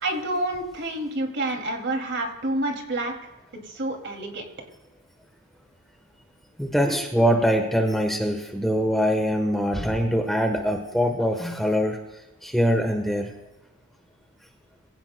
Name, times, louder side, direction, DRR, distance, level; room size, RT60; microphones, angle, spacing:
voice 1, 0.0-3.1 3.7-4.4, right 1 dB, 50° right, 3 dB, 2.5 m, -28 dB
voice 2, 6.6-12.0 12.4-13.3, equal, ahead, 4 dB, 1.0 m, -23 dB
23.5 x 16.5 x 2.2 m, 1.0 s
head